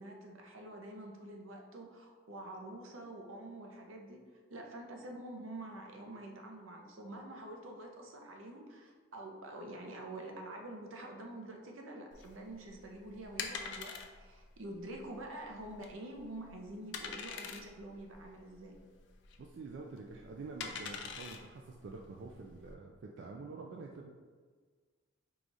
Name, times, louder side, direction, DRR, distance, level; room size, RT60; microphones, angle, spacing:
voice 1, 0.0-4.2 4.5-18.7, right 1 dB, 85° right, 2 dB, 0.7 m, -47 dB
sound 1, 12.1-22.7, left 6 dB, 60° left, 0.4 m, -45 dB
voice 2, 19.4-24.1, right 3 dB, 60° right, 1 dB, 0.3 m, -47 dB
4.8 x 2.4 x 3.9 m, 1.5 s
head